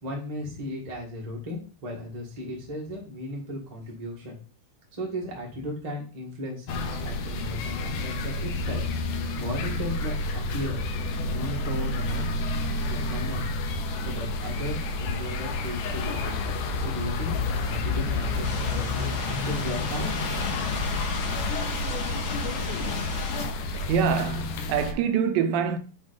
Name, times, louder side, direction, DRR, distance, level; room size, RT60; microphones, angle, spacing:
voice 1, 0.0-4.4 4.9-8.8 9.4-10.8 11.3-12.3 12.9-13.5 14.0-16.4 16.8-20.3, left 1 dB, 40° right, 0.5 m, -36 dB
sound 1, 6.7-24.9, left 2 dB, 80° left, 1.9 m, -30 dB
sound 2, 18.4-23.4, left 5 dB, 60° left, 2.5 m, -34 dB
voice 2, 23.7-25.8, right 7 dB, 85° right, 2.3 m, -25 dB
7.2 x 3.1 x 5.0 m
omnidirectional pair, 4.1 m